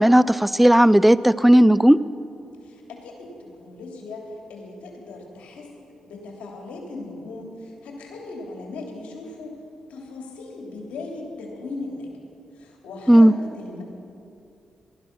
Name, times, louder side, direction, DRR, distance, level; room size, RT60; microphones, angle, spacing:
voice 1, 0.0-2.0 13.1-13.3, right 1 dB, 5° right, 17 dB, 0.4 m, -14 dB
voice 2, 2.6-5.7 6.0-9.6 9.9-12.2 12.6-13.8, left 3 dB, 90° left, 0 dB, 3.1 m, -38 dB
18.5 x 13.0 x 6.0 m, 2.6 s
cardioid pair, 65°, 2 cm